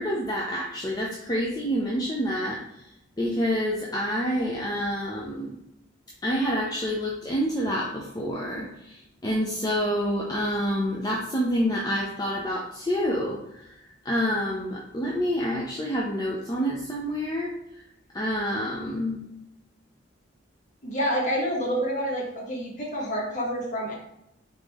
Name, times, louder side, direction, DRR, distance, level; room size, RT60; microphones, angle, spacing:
voice 1, 0.0-2.8 3.2-5.5 6.2-17.5 18.1-19.2, equal, 20° left, -3 dB, 0.5 m, -28 dB
voice 2, 20.8-23.9, equal, 40° left, -3 dB, 1.3 m, -28 dB
3.8 x 3.6 x 3.5 m, 0.84 s
head